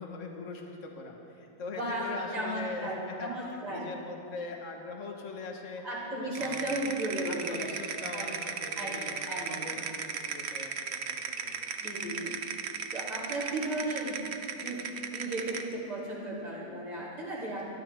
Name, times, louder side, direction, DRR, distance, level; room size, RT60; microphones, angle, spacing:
voice 1, 0.0-5.8 6.2-6.9 7.3-11.7 17.4-17.5, left 3 dB, 50° left, 1 dB, 1.8 m, -42 dB
voice 2, 1.7-3.9 5.8-7.7 8.1-8.4 8.8-9.7 11.8-12.4 12.9-14.2 14.6-14.8 15.1-17.7, right 1 dB, 75° right, -7 dB, 4.2 m, -35 dB
sound 1, 6.3-15.7, right 6 dB, 50° right, 0.9 m, -36 dB
24.0 x 13.0 x 3.6 m, 2.7 s
omnidirectional pair, 1.7 m